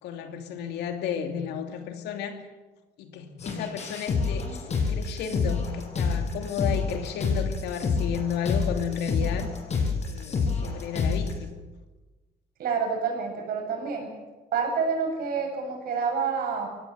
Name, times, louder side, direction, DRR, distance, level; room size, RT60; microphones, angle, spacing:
voice 1, 0.0-2.4 3.0-4.6 4.9-9.5 10.0-11.6, left 8 dB, 80° left, 6 dB, 2.8 m, -33 dB
sound 1, 3.4-11.3, left 5 dB, 40° left, 6.4 m, -28 dB
voice 2, 12.6-14.1 14.5-16.7, right 5 dB, 60° right, 3 dB, 7.5 m, -28 dB
24.5 x 17.5 x 8.1 m, 1.2 s
cardioid pair, 110°, 17 cm